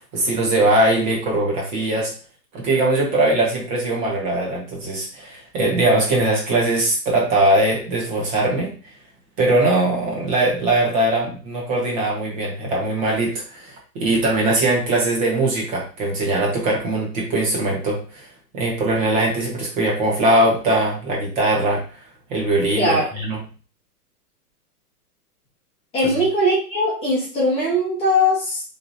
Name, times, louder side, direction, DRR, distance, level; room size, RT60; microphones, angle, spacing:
voice 1, 0.1-2.1 2.5-8.7 9.4-18.3 18.5-21.8 22.3-23.4 26.0-26.1, right 2 dB, 30° right, -2 dB, 1.4 m, -21 dB
voice 2, 22.8-23.1 25.9-28.6, left 1 dB, 10° left, -6 dB, 1.3 m, -20 dB
4.7 x 3.6 x 2.8 m, 0.37 s
hypercardioid pair, 165°, 47 cm